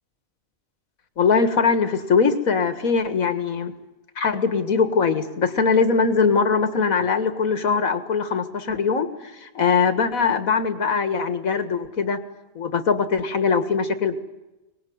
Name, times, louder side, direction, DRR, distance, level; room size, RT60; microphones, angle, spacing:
voice 1, 1.2-3.7 4.2-12.2 12.6-14.2, left 5 dB, 85° left, 10 dB, 2.1 m, -21 dB
24.5 x 19.5 x 9.5 m, 1.0 s
omnidirectional pair, 1.4 m